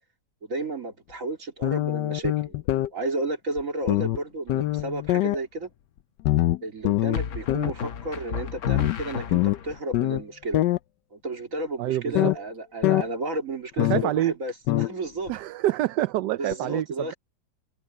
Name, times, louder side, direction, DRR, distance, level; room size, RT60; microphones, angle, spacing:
voice 1, 0.4-2.6 2.9-5.7 6.6-10.6 11.1-15.3 16.4-17.2, right 2 dB, 50° right, 3.4 m, -32 dB
sound 1, 1.6-2.9 3.6-3.7 3.9-4.2 4.5-5.4 6.3-7.2 7.5-7.7 8.7-10.2 10.5-10.8 12.2-12.4 12.8-13.1 13.8-14.1 14.7-14.9 15.3-15.4 16.5-16.6, left 15 dB, 85° left, 1.3 m, -23 dB
sound 2, 4.5-5.0 7.1-9.8, left 7 dB, 55° left, 1.1 m, -34 dB
voice 2, 11.8-12.3 13.8-14.3 15.3-17.1, right 14 dB, 80° right, 1.2 m, -26 dB
omnidirectional pair, 1.8 m